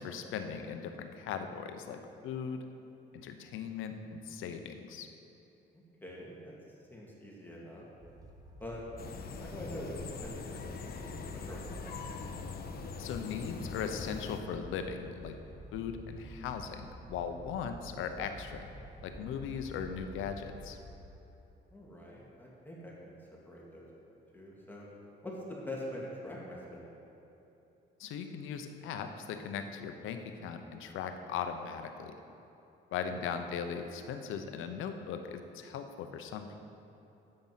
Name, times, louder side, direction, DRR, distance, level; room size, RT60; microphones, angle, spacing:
voice 1, 0.0-2.6 3.1-5.1 13.0-15.4 15.7-18.7 19.0-20.8 28.0-32.1 32.9-36.6, left 7 dB, 85° left, 7 dB, 0.8 m, -39 dB
voice 2, 6.0-6.5 6.9-7.8 8.6-8.8 9.4-9.9 10.2-11.8 21.7-23.1 23.5-23.9 24.3-24.9 25.2-27.0 33.0-33.2, left 1 dB, 10° left, -4 dB, 2.1 m, -44 dB
sound 1, 8.0-21.2, right 1 dB, 20° right, 1.3 m, -50 dB
sound 2, 9.0-14.4, left 5 dB, 50° left, 0.8 m, -42 dB
9.1 x 7.8 x 5.6 m, 3.0 s
cardioid pair, 90°, 20 cm